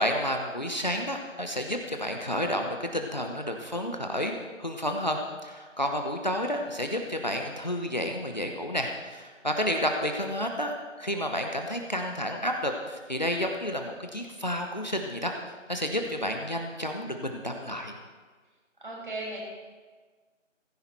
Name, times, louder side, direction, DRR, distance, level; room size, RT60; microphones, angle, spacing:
voice 1, 0.0-4.3 4.6-10.7 11.0-15.3 15.7-18.0, equal, 35° left, 3 dB, 1.0 m, -30 dB
voice 2, 18.8-19.4, right 2 dB, 40° right, -4 dB, 5.9 m, -36 dB
17.0 x 15.0 x 4.5 m, 1.4 s
figure-of-eight pair, 165°, 38 cm